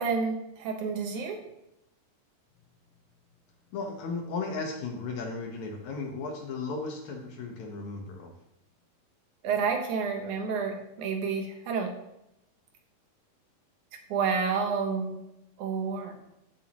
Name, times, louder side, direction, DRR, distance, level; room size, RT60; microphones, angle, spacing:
voice 1, 0.0-1.4 9.4-11.9 14.1-15.2 15.6-16.1, right 5 dB, 65° right, 4 dB, 2.5 m, -29 dB
voice 2, 3.7-8.3, left 4 dB, 65° left, 2 dB, 2.4 m, -35 dB
15.0 x 7.3 x 3.0 m, 0.83 s
omnidirectional pair, 3.9 m